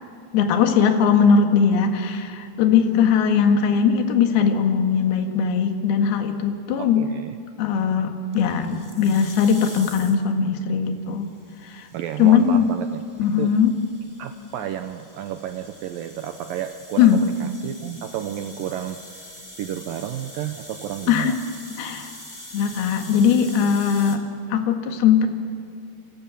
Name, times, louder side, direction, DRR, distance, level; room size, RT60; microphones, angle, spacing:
voice 1, 0.3-7.1 7.6-11.3 11.6-11.9 12.2-12.7 13.2-13.7 17.0-17.2 21.1-21.4 21.8-22.1 22.5-24.2 24.5-25.3, left 7 dB, 65° left, 5 dB, 3.6 m, -19 dB
voice 2, 6.8-7.4 11.9-13.0 13.4-13.5 14.2-19.3 19.6-21.4, right 11 dB, 85° right, 8 dB, 2.0 m, -32 dB
sound 1, 8.3-10.3 11.4-24.2, left 1 dB, 10° left, 1.2 m, -44 dB
30.0 x 26.0 x 7.1 m, 2.3 s
omnidirectional pair, 5.1 m